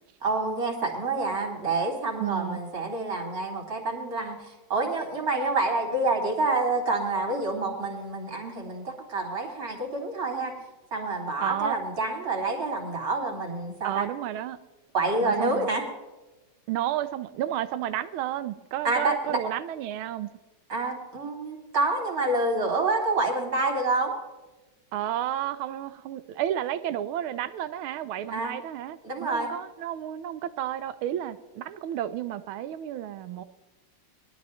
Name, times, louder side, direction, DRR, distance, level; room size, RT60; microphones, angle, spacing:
voice 1, 0.2-10.5 10.9-14.1 14.9-15.8 18.8-19.4 20.7-24.2 28.3-28.5 29.0-29.5, right 2 dB, 45° right, 3.2 m, -28 dB
voice 2, 2.2-2.6 11.4-11.8 13.8-14.6 15.2-15.7 16.7-20.3 24.9-33.4, right 12 dB, 85° right, 1.5 m, -32 dB
21.0 x 12.0 x 3.1 m
omnidirectional pair, 2.3 m